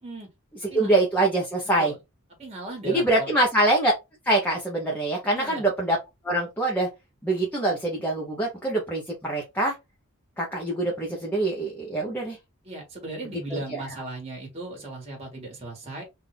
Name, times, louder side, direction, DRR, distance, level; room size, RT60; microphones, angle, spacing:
voice 1, 0.7-1.9 2.8-3.9 4.3-6.0 6.2-6.9 7.2-9.7 10.4-12.4 13.5-13.8, right 2 dB, 10° left, 0.9 m, -24 dB
voice 2, 2.4-3.3 5.3-5.6 12.6-16.0, right 2 dB, 30° right, 1.8 m, -37 dB
3.9 x 2.8 x 3.3 m
head